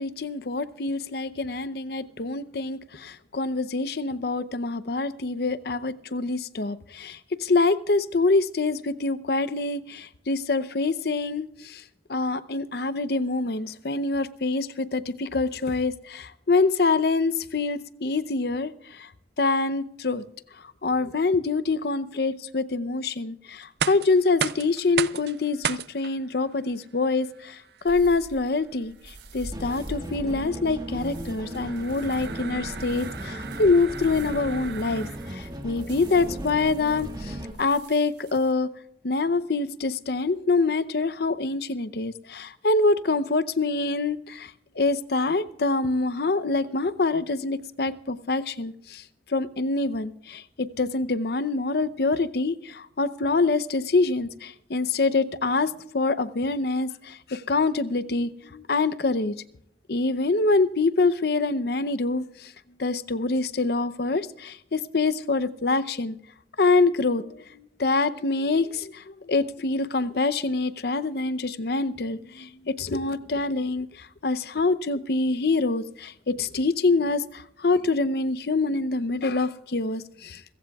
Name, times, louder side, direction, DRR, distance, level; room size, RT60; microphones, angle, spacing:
voice 1, 0.0-11.8 12.1-19.1 19.4-20.2 20.8-27.6 27.8-28.9 29.3-38.7 39.0-49.0 49.3-59.4 59.9-62.5 62.8-66.2 66.6-80.5, left 3 dB, 60° left, 0.7 m, -25 dB
sound 1, 23.6-35.5, right 8 dB, 65° right, 0.4 m, -36 dB
sound 2, 27.9-38.5, right 1 dB, 85° right, 3.7 m, -44 dB
sound 3, 29.5-37.5, equal, 25° right, 1.8 m, -37 dB
27.0 x 15.5 x 2.4 m
head